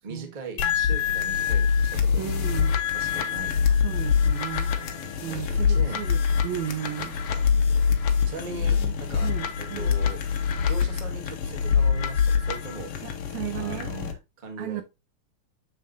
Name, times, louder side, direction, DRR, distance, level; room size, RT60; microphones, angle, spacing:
voice 1, 0.0-2.3 2.9-3.8 4.7-6.0 7.3-7.9 8.2-9.3 9.6-10.2 10.7-12.9 13.5-14.1 14.4-14.8, right 4 dB, 25° right, 1.2 m, -40 dB
sound 1, 0.6-14.1, left 6 dB, 60° left, 1.8 m, -25 dB
voice 2, 2.2-2.8 3.8-4.7 5.2-7.2 8.4-10.0 13.0-14.2 14.6-14.8, right 12 dB, 80° right, 1.7 m, -35 dB
7.1 x 7.1 x 2.6 m
omnidirectional pair, 3.4 m